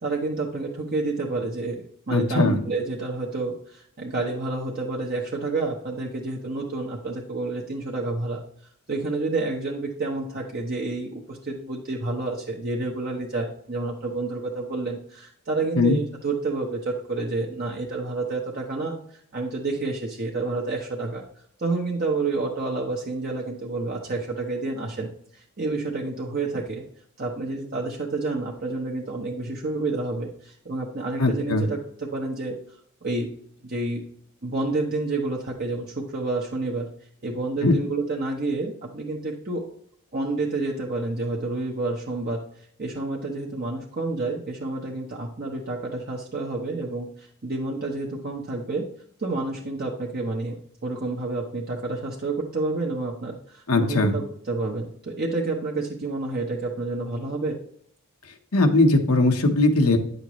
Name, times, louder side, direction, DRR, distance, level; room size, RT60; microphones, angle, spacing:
voice 1, 0.0-1.8 2.1-8.4 8.9-21.2 21.6-26.8 27.2-32.6 33.0-33.3 33.6-34.0 34.4-36.9 37.2-39.7 40.1-42.4 42.8-48.9 49.2-50.6 50.8-57.6, right 3 dB, 45° right, -2 dB, 0.9 m, -29 dB
voice 2, 2.1-2.6 15.8-16.0 31.2-31.7 37.6-37.8 53.7-54.1 58.5-60.0, left 2 dB, 85° left, 6 dB, 1.1 m, -19 dB
9.5 x 6.5 x 3.1 m, 0.65 s
head